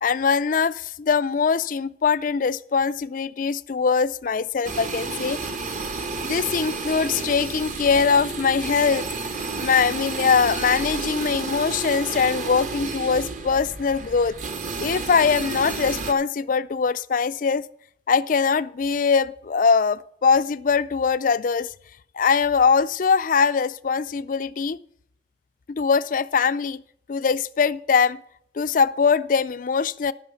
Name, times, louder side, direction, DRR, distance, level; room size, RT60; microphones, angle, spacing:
voice 1, 0.0-5.4 6.2-9.1 9.6-14.4 14.8-17.7 18.1-21.7 22.2-24.8 25.7-26.8 27.1-28.2 28.6-30.1, left 5 dB, 45° left, 0.4 m, -22 dB
sound 1, 4.6-16.1, right 3 dB, 45° right, 1.1 m, -31 dB
12.0 x 6.3 x 7.0 m
head